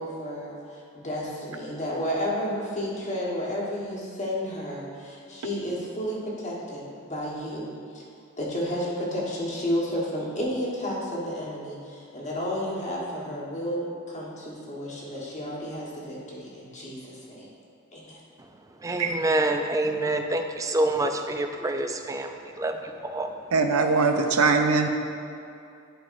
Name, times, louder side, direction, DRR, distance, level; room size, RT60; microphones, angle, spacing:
voice 1, 0.0-8.0 8.4-17.5 17.9-18.2, equal, 35° left, -5 dB, 1.3 m, -32 dB
voice 2, 18.8-23.4, right 2 dB, 15° right, 6 dB, 0.3 m, -27 dB
voice 3, 23.5-24.9, right 4 dB, 85° right, 5 dB, 0.6 m, -21 dB
11.5 x 5.1 x 2.6 m, 2.6 s
head